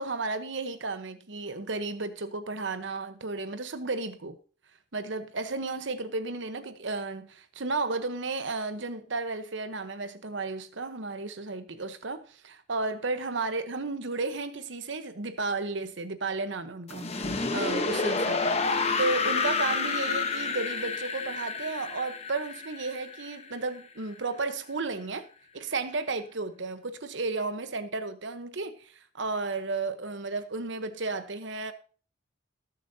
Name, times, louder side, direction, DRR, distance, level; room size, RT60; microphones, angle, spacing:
voice 1, 0.0-4.4 4.9-25.3 25.5-31.7, right 3 dB, 70° right, 1.0 m, -33 dB
sound 1, 16.9-23.8, left 4 dB, 35° left, 1.0 m, -29 dB
18.0 x 7.0 x 2.8 m
head